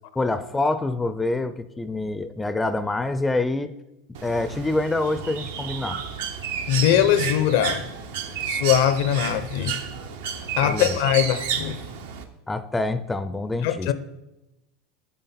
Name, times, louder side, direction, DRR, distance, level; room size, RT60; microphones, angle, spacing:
voice 1, 0.2-3.7 4.2-6.0 10.6-11.0 12.5-13.9, left 2 dB, 10° left, 0.4 m, -26 dB
Bird, 4.1-12.2, right 7 dB, 75° right, 0.7 m, -31 dB
voice 2, 6.7-7.8 8.4-9.8 10.6-11.8 13.6-13.9, left 10 dB, 70° left, 0.5 m, -21 dB
7.9 x 3.7 x 4.2 m
hypercardioid pair, 110°, 0 cm